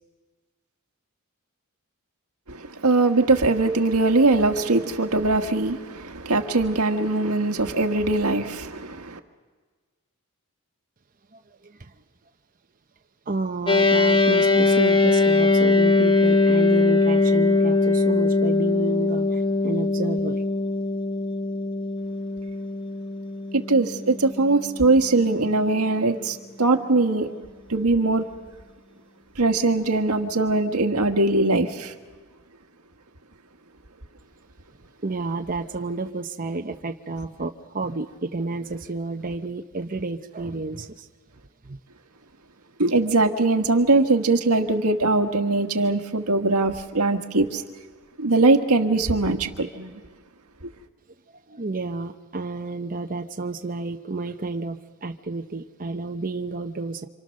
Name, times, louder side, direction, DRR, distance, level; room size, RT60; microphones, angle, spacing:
voice 1, 2.5-9.2 23.5-27.3 27.7-28.2 29.3-31.9 42.8-47.6 48.2-50.0, right 2 dB, 85° right, 1.7 m, -21 dB
voice 2, 11.3-11.9 13.3-20.4 35.0-41.1 41.6-41.8 51.5-57.1, right 3 dB, 40° right, 0.9 m, -31 dB
sound 1, 13.7-25.2, left 3 dB, 20° left, 0.9 m, -21 dB
27.5 x 26.5 x 6.5 m
head